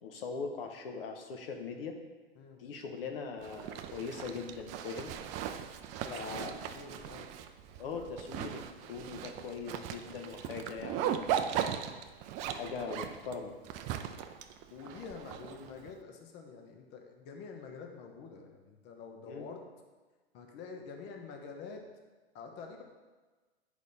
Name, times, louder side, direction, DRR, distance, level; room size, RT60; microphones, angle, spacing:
voice 1, 0.0-2.0 2.6-5.1 5.9-6.6 7.8-11.4 12.5-13.5 19.3-19.5, left 5 dB, 65° left, 4 dB, 1.0 m, -41 dB
Zipper (clothing), 3.4-15.9, right 9 dB, 25° right, 0.3 m, -38 dB
voice 2, 6.0-7.3 7.9-8.1 14.7-19.6 20.3-21.8 22.3-22.8, left 5 dB, 35° left, 2 dB, 1.0 m, -47 dB
8.3 x 5.1 x 4.1 m, 1.3 s
hypercardioid pair, 120°, 31 cm